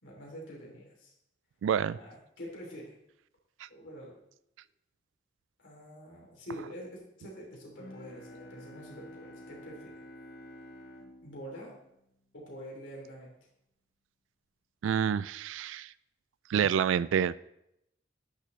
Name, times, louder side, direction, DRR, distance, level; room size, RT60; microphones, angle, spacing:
voice 1, 0.0-1.1 1.9-2.9 3.7-4.2 5.6-10.0 11.2-11.7 12.3-13.3, equal, 75° left, -2 dB, 3.0 m, -46 dB
voice 2, 1.6-2.0 14.8-15.9 16.5-17.3, right 8 dB, 85° right, 18 dB, 0.3 m, -27 dB
Bowed string instrument, 7.7-12.9, left 1 dB, 55° left, 1.2 m, -51 dB
10.0 x 6.6 x 3.2 m, 0.79 s
head